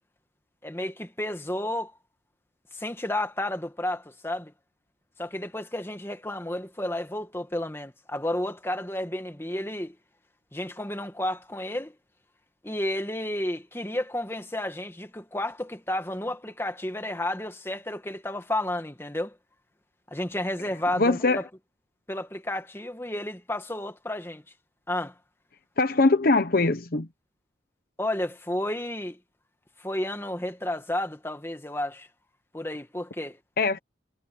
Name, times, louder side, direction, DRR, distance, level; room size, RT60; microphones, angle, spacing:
voice 1, 0.6-1.9 2.7-4.5 5.2-10.0 10.5-12.0 12.6-19.4 20.1-21.5 22.1-24.4 24.9-25.1 28.0-29.2 29.8-32.1 32.5-33.4, left 1 dB, 15° left, 1.9 m, -31 dB
voice 2, 21.0-21.4 25.8-27.1 33.6-33.8, left 3 dB, 50° left, 0.9 m, -22 dB
head